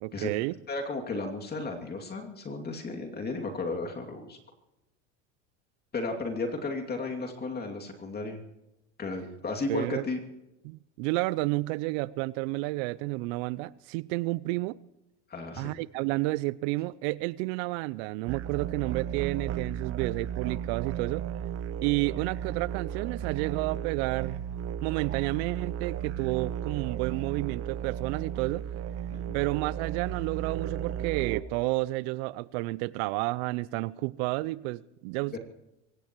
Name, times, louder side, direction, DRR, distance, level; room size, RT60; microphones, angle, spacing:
voice 1, 0.0-0.5 9.7-10.0 10.6-14.8 15.6-21.3 21.8-24.4 24.8-28.7 29.3-35.4, right 21 dB, 60° right, 0.6 m, -31 dB
voice 2, 0.7-4.4 5.9-8.4 9.0-10.2 15.3-15.8 29.1-29.4 35.3-35.4, left 3 dB, 25° left, 2.7 m, -34 dB
sound 1, 18.3-31.4, right 10 dB, 40° right, 1.0 m, -34 dB
23.5 x 17.5 x 3.1 m
hypercardioid pair, 90°, 36 cm